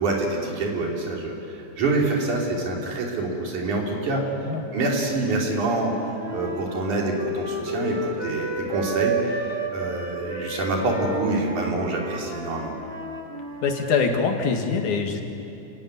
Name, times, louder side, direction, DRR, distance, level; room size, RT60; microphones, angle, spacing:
voice 1, 0.0-4.2 4.7-5.9 6.3-12.7, right 2 dB, 80° right, -1 dB, 4.7 m, -26 dB
voice 2, 4.2-4.6 13.6-15.2, left 5 dB, 75° left, 3 dB, 3.5 m, -24 dB
Wind instrument woodwind instrument, 5.6-13.8, right 2 dB, 20° right, 2.1 m, -32 dB
29.5 x 16.5 x 9.8 m, 2.8 s
omnidirectional pair, 3.5 m